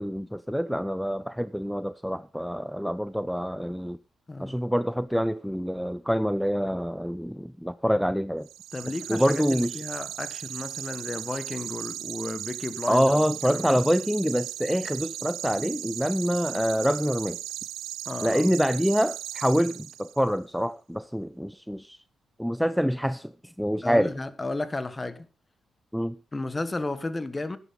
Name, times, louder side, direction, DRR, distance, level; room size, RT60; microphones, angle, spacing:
voice 1, 0.0-4.0 4.4-8.5 9.1-9.8 12.9-17.4 18.2-22.0 22.4-24.1 25.9-26.2, equal, ahead, 0.6 m, -26 dB
voice 2, 4.3-4.6 8.7-13.1 13.4-13.8 18.0-18.5 23.8-25.3 26.3-27.6, left 2 dB, 25° left, 1.5 m, -33 dB
sound 1, 8.4-20.3, right 13 dB, 85° right, 0.6 m, -37 dB
12.5 x 11.0 x 3.8 m
supercardioid pair, 50°, 0 cm